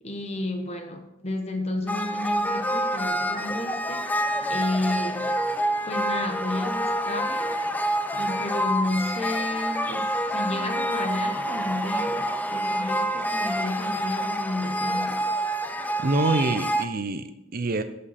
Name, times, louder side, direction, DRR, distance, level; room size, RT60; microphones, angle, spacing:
voice 1, 0.0-5.3 5.9-7.6 8.1-15.2, left 2 dB, 35° left, 5 dB, 1.1 m, -31 dB
sound 1, 1.9-16.8, equal, 10° left, 0.4 m, -27 dB
voice 2, 16.0-17.8, right 2 dB, 50° right, 10 dB, 0.7 m, -25 dB
14.0 x 5.3 x 4.3 m, 0.87 s
head